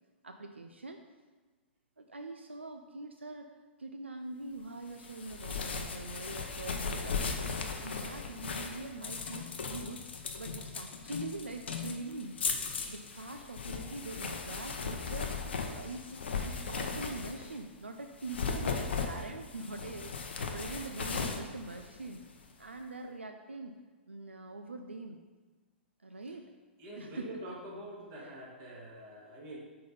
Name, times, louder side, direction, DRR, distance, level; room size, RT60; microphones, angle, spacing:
voice 1, 0.2-1.0 2.0-3.5 3.8-10.1 10.4-12.4 12.9-15.3 15.7-22.2 22.6-23.8 24.1-25.2 26.0-26.5 27.0-27.4 28.2-28.3, right 2 dB, 85° right, 5 dB, 0.4 m, -43 dB
sound 1, 5.0-17.6 18.1-22.4, left 5 dB, 70° left, 0.7 m, -37 dB
voice 2, 26.8-29.6, right 1 dB, 35° right, -4 dB, 1.9 m, -45 dB
5.5 x 3.8 x 5.3 m, 1.3 s
figure-of-eight pair, 110°, 6 cm